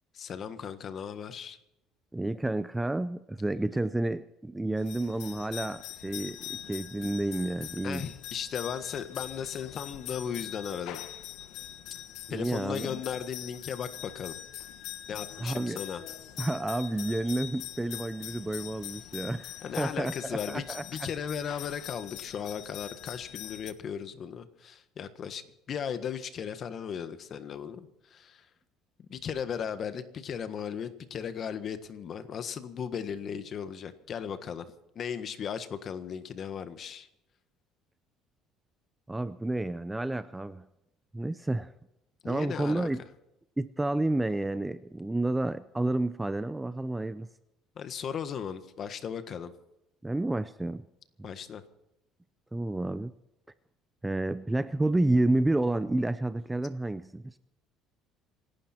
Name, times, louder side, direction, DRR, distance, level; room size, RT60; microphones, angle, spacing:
voice 1, 0.1-1.6 7.8-11.0 12.3-14.3 15.1-16.0 19.6-25.4 25.7-28.4 29.1-34.6 34.9-37.1 42.2-42.9 47.8-49.5 51.2-51.6, left 7 dB, 40° left, 11 dB, 1.5 m, -36 dB
voice 2, 2.1-8.0 12.3-12.9 15.4-15.8 16.4-21.1 39.1-40.6 41.1-41.7 42.3-43.0 43.6-47.3 50.0-50.9 51.2-51.3 52.5-53.1 54.0-57.3, right 2 dB, 10° right, 14 dB, 0.5 m, -30 dB
sound 1, 4.8-23.7, left 12 dB, 70° left, 1.3 m, -43 dB
27.0 x 12.0 x 4.4 m, 0.88 s
cardioid pair, 145°, 0 cm